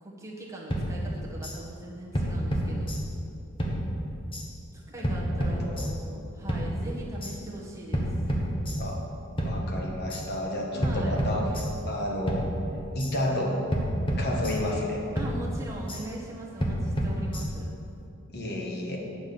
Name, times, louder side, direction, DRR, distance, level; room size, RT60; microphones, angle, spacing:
voice 1, 0.0-3.0 4.7-8.1 10.7-11.1 15.1-17.7, right 1 dB, 15° right, -4 dB, 1.4 m, -41 dB
sound 1, 0.7-1.6 2.1-3.3 3.6-4.5 5.0-6.1 6.5-7.3 7.9-9.1 9.4-10.2 10.8-12.0 12.3-13.1 13.7-14.9 15.2-16.0 16.6-17.8, equal, 25° left, 1.2 m, -30 dB
voice 2, 5.3-5.8 8.8-9.0 9.4-12.5 12.9-13.7 14.2-15.0 18.3-19.0, left 1 dB, 50° left, 0 dB, 1.4 m, -31 dB
9.3 x 6.0 x 6.9 m, 2.7 s
head